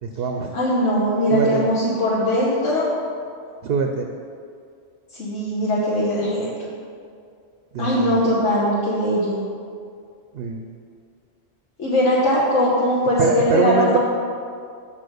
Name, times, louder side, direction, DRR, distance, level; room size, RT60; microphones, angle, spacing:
voice 1, 0.0-0.5 1.3-1.7 3.6-4.1 7.7-8.3 10.3-10.7 13.2-14.0, right 5 dB, 60° right, 3 dB, 0.7 m, -23 dB
voice 2, 0.5-2.9 5.1-6.5 7.8-9.5 11.8-14.0, equal, 90° left, -7 dB, 1.6 m, -20 dB
6.7 x 5.7 x 6.5 m, 2.4 s
omnidirectional pair, 1.2 m